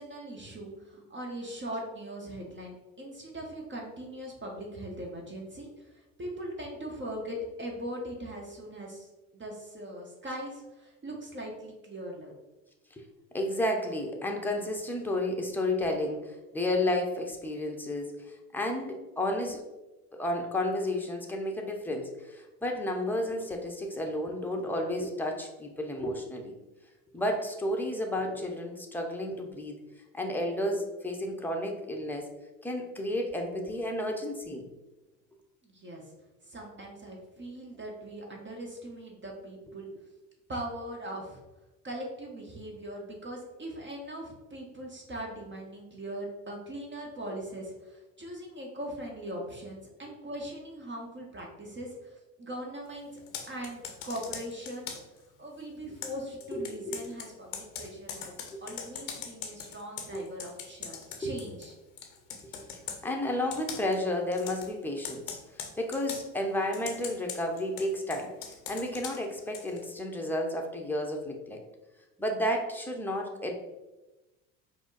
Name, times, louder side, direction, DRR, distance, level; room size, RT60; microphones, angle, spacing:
voice 1, 0.0-12.3 35.6-36.0 36.4-39.9 40.5-41.4 41.8-53.1 53.5-55.0 55.4-58.3 58.6-61.7, right 1 dB, 30° right, -1 dB, 1.1 m, -40 dB
voice 2, 13.3-19.6 20.1-26.5 27.1-29.8 30.1-32.3 32.6-34.7 56.5-57.0 60.1-60.2 61.2-61.3 63.0-65.4 65.8-68.3 68.7-71.6 72.2-73.5, left 1 dB, 5° left, 1 dB, 0.8 m, -32 dB
Computer keyboard, 53.2-55.2 56.0-61.7 62.0-63.0 63.5-64.0 64.3-64.7 65.0-66.3 66.7-69.9, left 7 dB, 85° left, 0.7 m, -41 dB
4.8 x 2.1 x 3.9 m, 1.1 s
hypercardioid pair, 65°, 40 cm